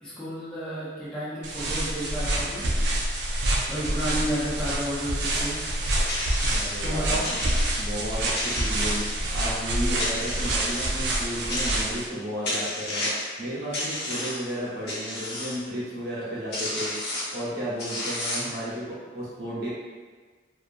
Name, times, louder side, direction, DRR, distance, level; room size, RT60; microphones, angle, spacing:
voice 1, 0.0-2.7 3.7-5.6 6.8-7.2, equal, 5° left, -12 dB, 0.6 m, -32 dB
sound 1, 1.4-12.1, right 1 dB, 80° right, 0.5 m, -27 dB
sound 2, 6.1-6.8 7.2-7.9 8.3-9.4 10.0-11.0 11.5-12.1 12.4-13.3 13.7-14.5 14.9-15.6 16.2-16.3 16.5-17.4 17.8-18.6, left 1 dB, 75° left, 0.9 m, -32 dB
voice 2, 6.5-7.4 7.8-19.7, equal, 60° right, -8 dB, 0.9 m, -33 dB
2.7 x 2.4 x 2.5 m, 1.4 s
head